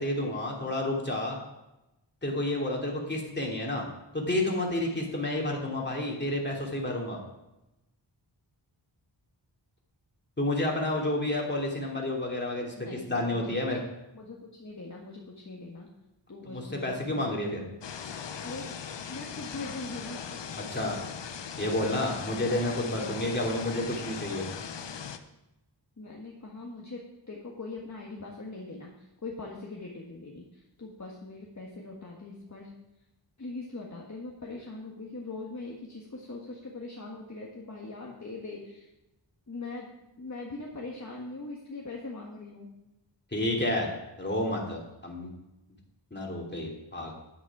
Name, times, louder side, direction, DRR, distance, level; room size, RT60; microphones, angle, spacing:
voice 1, 0.0-1.4 2.2-3.8 4.1-7.2 10.4-13.8 16.5-17.6 20.6-21.0 21.6-24.4 43.3-43.9 44.2-45.3 46.1-47.1, left 1 dB, 25° left, -1 dB, 2.8 m, -30 dB
voice 2, 12.8-13.8 14.1-15.9 16.3-17.7 18.4-18.7 19.1-20.2 26.0-32.7 33.4-38.9 39.5-39.9 40.2-42.7, left 3 dB, 40° left, -2 dB, 1.6 m, -41 dB
sound 1, 17.8-25.2, left 7 dB, 70° left, 0.8 m, -39 dB
9.9 x 9.3 x 4.8 m, 0.94 s
wide cardioid pair, 65°, 44 cm